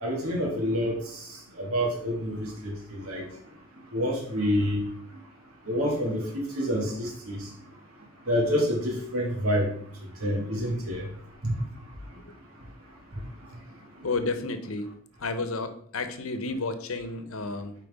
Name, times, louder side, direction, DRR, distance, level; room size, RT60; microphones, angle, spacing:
voice 1, 0.0-1.2 1.6-3.2 3.9-4.8 5.7-6.2 6.5-7.4 8.3-9.7 10.2-11.1 11.4-11.5, equal, 85° right, -1 dB, 2.3 m, -27 dB
voice 2, 14.0-14.9 15.2-17.7, left 3 dB, 80° left, 9 dB, 0.9 m, -31 dB
9.0 x 4.6 x 3.6 m, 0.63 s
head